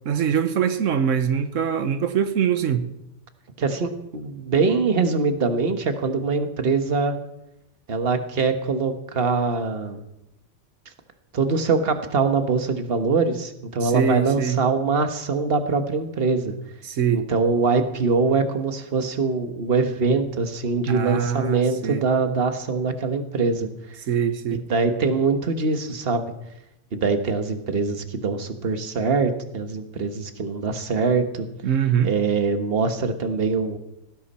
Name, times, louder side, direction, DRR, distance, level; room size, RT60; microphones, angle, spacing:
voice 1, 0.0-2.9 13.8-14.6 16.8-17.2 20.9-22.0 24.1-24.6 31.6-32.1, right 8 dB, 90° right, 10 dB, 1.3 m, -23 dB
voice 2, 3.6-7.1 7.9-10.0 11.3-16.5 17.1-24.0 24.7-26.3 26.9-31.5 32.0-33.8, right 4 dB, 50° right, 7 dB, 1.5 m, -23 dB
18.5 x 16.5 x 4.3 m, 0.85 s
omnidirectional pair, 1.3 m